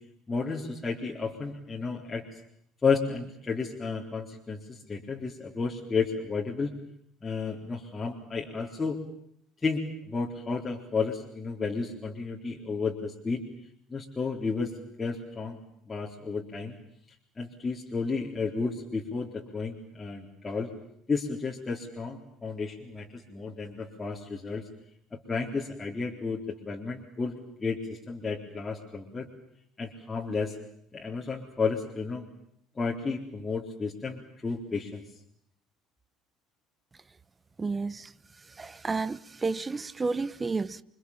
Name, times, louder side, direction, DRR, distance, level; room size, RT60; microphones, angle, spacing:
voice 1, 0.3-2.2 2.8-6.7 7.2-9.0 9.6-13.4 13.9-14.7 15.0-15.6 15.9-16.8 17.4-20.7 21.1-24.6 25.1-27.3 27.6-29.3 29.8-30.6 30.9-32.3 32.8-35.0, left 4 dB, 20° left, 4.1 m, -32 dB
voice 2, 37.6-38.1 38.6-40.8, right 4 dB, 20° right, 1.2 m, -31 dB
29.0 x 25.0 x 7.4 m
figure-of-eight pair, 60°, 0 cm